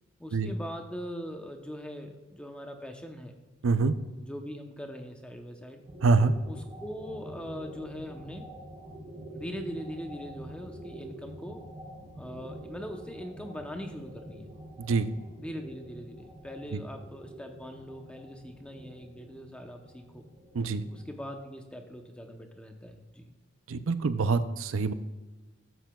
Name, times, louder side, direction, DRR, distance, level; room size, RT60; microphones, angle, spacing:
voice 1, 0.2-3.3 4.2-5.8 6.5-8.5 9.3-11.6 12.1-14.5 15.4-20.2 20.9-23.3, equal, 5° left, 4 dB, 0.7 m, -41 dB
voice 2, 3.6-4.0 6.0-6.3 14.8-15.1 16.7-16.8 20.5-20.8 23.7-24.9, right 4 dB, 75° right, 12 dB, 0.5 m, -25 dB
sound 1, 5.9-21.9, right 1 dB, 25° right, 1.7 m, -46 dB
13.0 x 8.0 x 2.3 m, 1.2 s
head